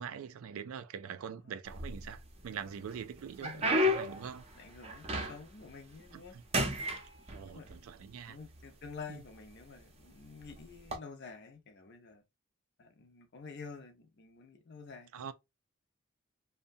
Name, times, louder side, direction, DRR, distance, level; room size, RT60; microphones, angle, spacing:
voice 1, 0.0-4.4 6.1-6.4 7.3-8.4 9.1-9.2 15.1-15.3, right 7 dB, 75° right, 0.3 m, -44 dB
sound 1, 1.7-2.4 2.9-5.6 6.0-6.3 6.5-7.8 8.6-8.7 9.4-9.6 10.8-11.0, equal, 30° right, 0.6 m, -32 dB
voice 2, 3.4-3.8 4.2-4.3 4.5-6.3 7.5-7.7 8.3-12.2 12.8-15.3, left 5 dB, 50° left, 0.6 m, -49 dB
2.7 x 2.1 x 2.5 m
head